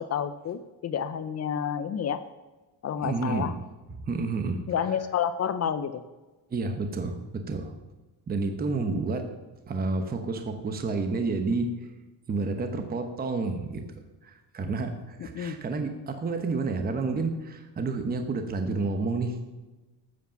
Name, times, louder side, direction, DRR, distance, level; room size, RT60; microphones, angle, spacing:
voice 1, 0.0-2.2 2.8-3.5 4.7-6.0 8.8-9.0 15.3-15.6, left 8 dB, 35° left, 13 dB, 0.5 m, -30 dB
voice 2, 3.0-3.5 3.9-4.6 6.5-7.7 8.3-9.3 9.6-11.7 12.3-13.8 14.2-19.4, right 3 dB, 20° right, 7 dB, 1.0 m, -30 dB
13.0 x 8.3 x 7.0 m, 1.2 s
cardioid pair, 175°, 45 cm